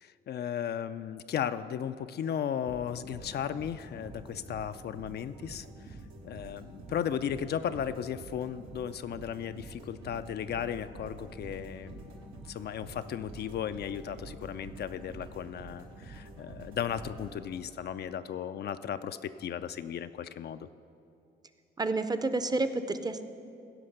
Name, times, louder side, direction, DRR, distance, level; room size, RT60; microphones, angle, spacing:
voice 1, 0.0-6.0 6.2-12.0 12.5-20.7, left 9 dB, 55° left, 11 dB, 0.4 m, -35 dB
sound 1, 2.6-17.9, right 2 dB, 85° right, 1.4 m, -47 dB
voice 2, 21.8-23.2, right 2 dB, 20° right, 10 dB, 0.6 m, -29 dB
16.0 x 5.3 x 6.6 m, 2.6 s
cardioid pair, 90°, 20 cm